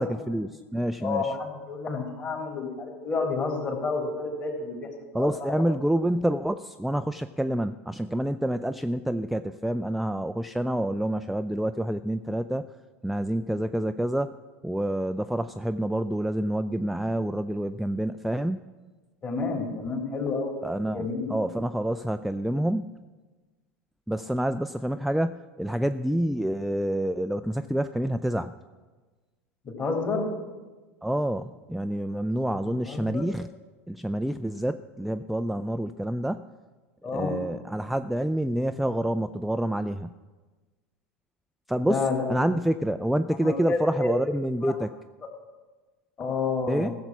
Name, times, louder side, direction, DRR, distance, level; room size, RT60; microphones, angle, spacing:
voice 1, 0.0-1.3 5.1-12.7 13.0-14.4 14.6-18.6 20.6-22.9 24.1-28.5 31.0-33.5 33.9-36.5 37.1-40.1 41.7-42.0 42.3-44.9 46.7-46.9, right 1 dB, ahead, 9 dB, 0.3 m, -28 dB
voice 2, 1.0-5.6 19.2-20.5 20.9-21.4 29.6-30.3 32.6-33.3 37.0-37.3 41.8-42.4 43.3-44.2 44.6-44.7 46.2-47.0, left 4 dB, 30° left, 1 dB, 3.2 m, -30 dB
16.0 x 7.1 x 6.0 m, 1.3 s
figure-of-eight pair, 80°, 8 cm